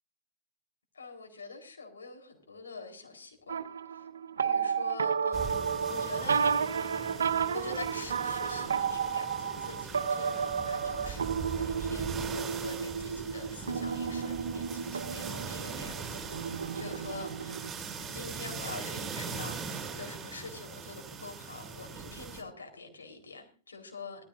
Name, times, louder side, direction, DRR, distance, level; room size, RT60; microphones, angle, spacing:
voice 1, 0.9-3.6 3.9-4.1 4.4-5.6 5.9-6.5 7.5-16.3 16.7-17.7 18.1-24.2, left 4 dB, 80° left, 3 dB, 4.0 m, -45 dB
sound 1, 3.5-17.7, right 6 dB, 80° right, 0.8 m, -32 dB
sound 2, 5.3-22.4, right 5 dB, 20° right, 6.5 m, -41 dB
19.5 x 14.5 x 2.6 m, 0.38 s
hypercardioid pair, 105°, 0 cm